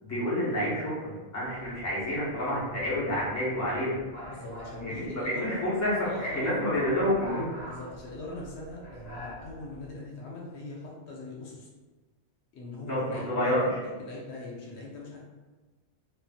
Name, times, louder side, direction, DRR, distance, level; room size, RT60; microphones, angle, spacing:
voice 1, 0.0-4.0 4.8-5.9 6.2-7.5 12.8-13.8, left 1 dB, 15° left, -9 dB, 0.8 m, -29 dB
sound 1, 1.5-9.9, left 1 dB, 40° left, 1.3 m, -46 dB
voice 2, 4.3-5.6 6.0-6.6 7.7-11.7 12.5-15.2, left 2 dB, 80° left, -3 dB, 0.9 m, -41 dB
2.6 x 2.4 x 2.4 m, 1.2 s
omnidirectional pair, 1.1 m